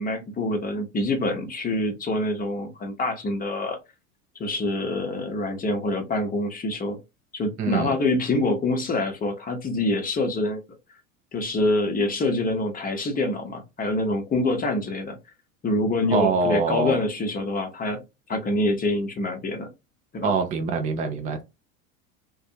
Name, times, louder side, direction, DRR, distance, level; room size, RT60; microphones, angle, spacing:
voice 1, 0.0-3.8 4.4-7.0 7.3-10.6 11.3-15.2 15.6-18.0 18.3-19.7 20.1-20.3, left 2 dB, 20° left, 0.7 m, -26 dB
voice 2, 7.6-7.9 16.1-17.0 20.2-21.4, right 4 dB, 20° right, 0.4 m, -24 dB
2.5 x 2.2 x 2.5 m
hypercardioid pair, 85°, 42 cm